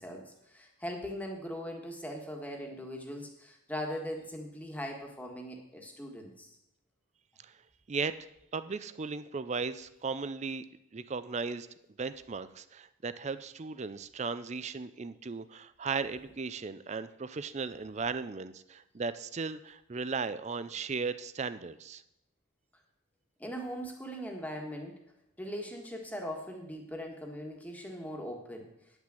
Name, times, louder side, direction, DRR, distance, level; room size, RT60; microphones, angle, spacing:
voice 1, 0.0-6.5 23.4-24.9 25.4-28.7, equal, 10° left, 1 dB, 1.4 m, -40 dB
voice 2, 7.9-10.6 10.9-11.7 12.0-22.0, right 4 dB, 35° right, 14 dB, 0.4 m, -36 dB
10.0 x 6.0 x 7.6 m, 0.84 s
head